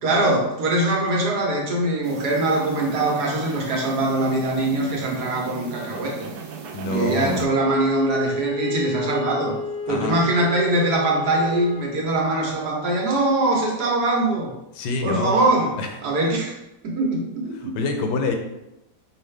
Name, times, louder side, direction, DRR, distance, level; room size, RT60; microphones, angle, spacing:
voice 1, 0.0-6.3 6.9-9.6 9.9-14.5 15.0-15.7 16.0-16.6 16.8-17.8, right 2 dB, 70° right, -2 dB, 1.5 m, -22 dB
sound 1, 2.0-7.5, right 5 dB, 85° right, 1.2 m, -36 dB
voice 2, 6.7-7.4 9.9-10.2 14.7-15.3 15.8-15.9 17.6-18.4, left 3 dB, 90° left, 5 dB, 1.3 m, -26 dB
Wind instrument woodwind instrument, 7.5-12.0, left 2 dB, 50° left, 0.8 m, -30 dB
5.5 x 2.5 x 3.2 m, 0.91 s
omnidirectional pair, 1.8 m